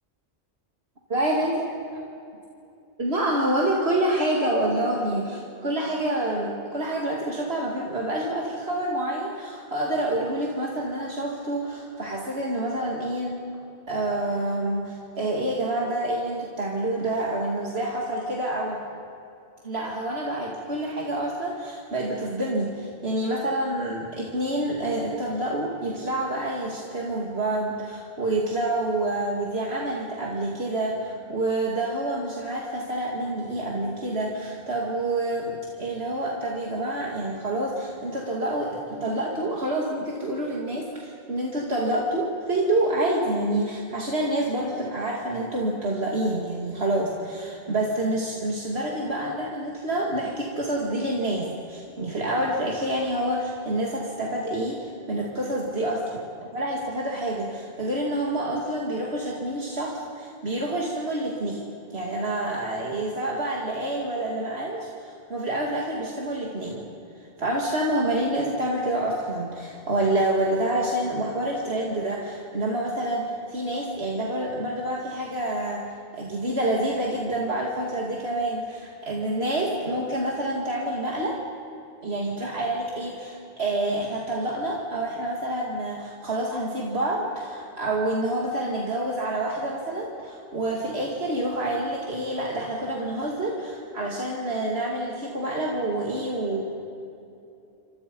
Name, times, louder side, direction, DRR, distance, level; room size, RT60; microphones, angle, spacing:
voice 1, 1.1-1.7 3.0-13.4 13.9-18.8 19.6-56.2 56.5-61.6 61.9-66.8 67.4-81.4 82.0-96.6, right 1 dB, 70° right, -2 dB, 2.6 m, -27 dB
29.0 x 25.0 x 5.4 m, 2.7 s
omnidirectional pair, 1.1 m